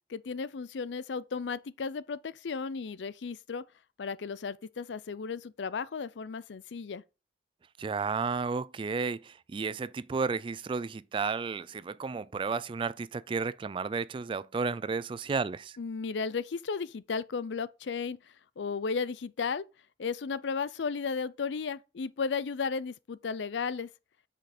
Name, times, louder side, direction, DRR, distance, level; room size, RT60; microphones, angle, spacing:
voice 1, 0.1-3.6 4.0-7.0 15.8-18.2 18.6-19.6 20.0-23.9, left 5 dB, 85° left, 0.5 m, -34 dB
voice 2, 7.8-15.8, right 4 dB, 30° right, 0.3 m, -32 dB
6.1 x 5.2 x 4.2 m
head